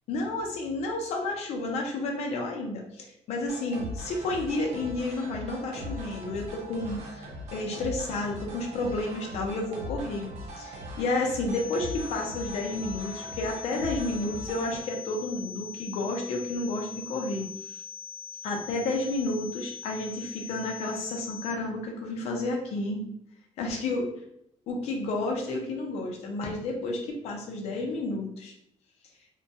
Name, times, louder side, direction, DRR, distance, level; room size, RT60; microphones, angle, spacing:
voice 1, 0.1-17.5 18.4-23.1 23.6-24.0 24.7-28.5, left 2 dB, 70° left, 1 dB, 0.6 m, -31 dB
sound 1, 3.5-14.8, equal, 75° right, 0.7 m, -40 dB
sound 2, 11.5-21.5, left 7 dB, 5° right, 0.6 m, -42 dB
2.2 x 2.2 x 2.7 m, 0.74 s
cardioid pair, 160°, 11 cm